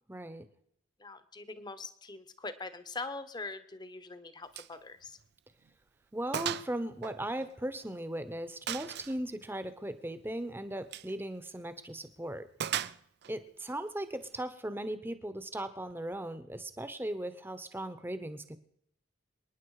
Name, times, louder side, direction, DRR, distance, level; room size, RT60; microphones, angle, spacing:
voice 1, 0.1-0.4 6.1-12.5 13.3-18.6, right 1 dB, 10° right, 11 dB, 0.9 m, -38 dB
voice 2, 1.0-5.2 13.3-13.4, left 3 dB, 20° left, 12 dB, 1.0 m, -43 dB
Gunshot gunfire, 4.5-4.8 5.1-5.2 5.7-5.8 6.3-6.7 7.0-8.0 8.7-9.2 10.8-11.1 12.6-13.3, right 9 dB, 55° right, 0.5 m, -36 dB
27.5 x 10.0 x 4.9 m, 0.76 s
head